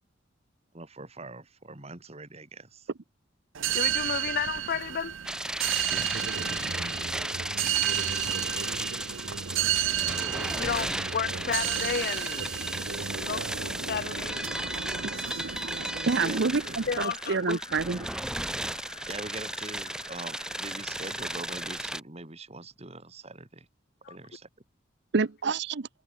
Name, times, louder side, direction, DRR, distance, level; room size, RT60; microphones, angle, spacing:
voice 1, 0.7-2.9 5.9-7.4 10.6-10.9 11.4-11.5 16.2-16.8 19.1-23.7 24.1-24.5, right 2 dB, 35° right, 2.4 m, -43 dB
sound 1, 3.5-17.0, right 10 dB, 90° right, 0.9 m, -32 dB
voice 2, 3.6-5.1 10.4-12.5 13.2-14.6 16.2-16.4 16.9-17.6 24.0-24.1, left 7 dB, 55° left, 0.4 m, -33 dB
sound 2, 5.2-22.0, right 1 dB, 5° right, 0.5 m, -35 dB
sound 3, 14.0-21.9, left 3 dB, 20° left, 7.8 m, -48 dB
voice 3, 16.1-18.1 25.1-25.9, right 4 dB, 60° right, 0.7 m, -27 dB
head